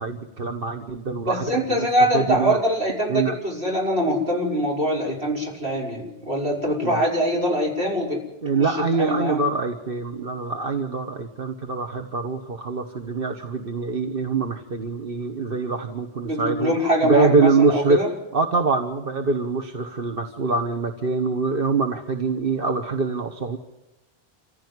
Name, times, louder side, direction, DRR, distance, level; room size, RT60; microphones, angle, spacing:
voice 1, 0.0-1.9 2.1-2.6 3.1-3.4 6.8-7.1 8.4-16.7 17.0-18.0 18.3-23.6, right 4 dB, 60° right, 5 dB, 1.5 m, -24 dB
voice 2, 1.3-8.2 8.7-9.4 16.2-18.1, equal, 75° right, -2 dB, 5.9 m, -23 dB
27.0 x 15.5 x 9.7 m, 1.0 s
omnidirectional pair, 1.1 m